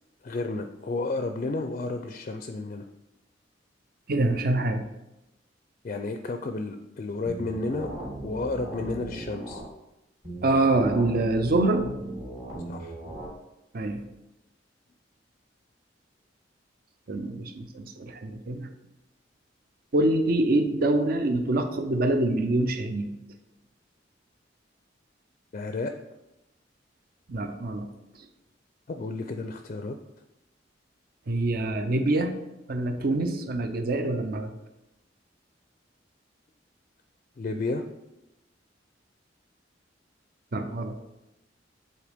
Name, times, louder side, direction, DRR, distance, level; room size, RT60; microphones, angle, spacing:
voice 1, 0.2-2.9 5.8-8.0 8.2-9.6 12.7-12.9 25.5-25.9 28.9-30.0 37.4-37.9, left 3 dB, 40° left, 6 dB, 0.4 m, -32 dB
voice 2, 4.1-4.9 10.4-11.9 13.7-14.0 17.1-18.7 19.9-23.1 27.3-27.9 31.3-32.4 32.7-34.5 40.5-41.0, right 2 dB, 55° right, 7 dB, 0.6 m, -25 dB
sound 1, 7.2-9.6 10.2-13.2, right 1 dB, 35° right, 2.4 m, -38 dB
7.5 x 4.1 x 3.5 m, 0.93 s
head